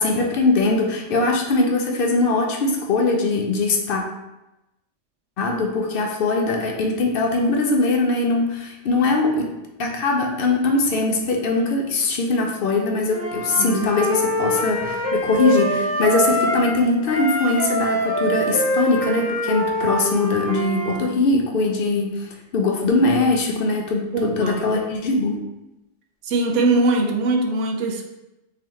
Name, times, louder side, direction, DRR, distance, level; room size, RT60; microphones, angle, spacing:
voice 1, 0.0-4.0 5.4-9.5 9.8-25.4, left 3 dB, 60° left, 2 dB, 0.7 m, -21 dB
Wind instrument woodwind instrument, 13.1-16.7 17.0-21.0, equal, 10° right, 0.5 m, -24 dB
voice 2, 24.1-24.6 26.2-28.0, right 2 dB, 80° right, 3 dB, 0.9 m, -21 dB
3.9 x 2.8 x 3.1 m, 0.94 s
omnidirectional pair, 1.2 m